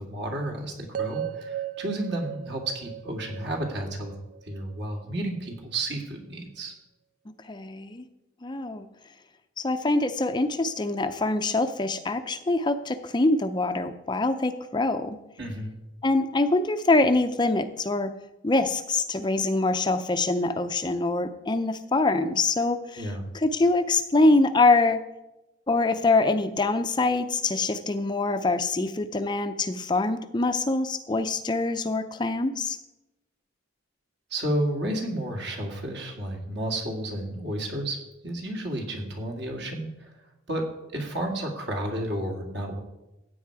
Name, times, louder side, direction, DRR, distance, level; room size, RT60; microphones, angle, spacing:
voice 1, 0.0-4.1 4.4-6.7 15.4-15.8 23.0-23.2 34.3-38.0 38.2-40.1 40.5-40.6 40.9-42.8, right 1 dB, 55° right, 2 dB, 2.3 m, -31 dB
sound 1, 0.9-5.1, right 10 dB, 40° right, 0.4 m, -36 dB
voice 2, 7.4-8.1 8.4-8.9 9.6-15.2 16.0-18.1 18.4-25.0 25.7-32.8, left 2 dB, 20° left, 9 dB, 0.5 m, -24 dB
15.0 x 8.5 x 4.7 m, 0.96 s
head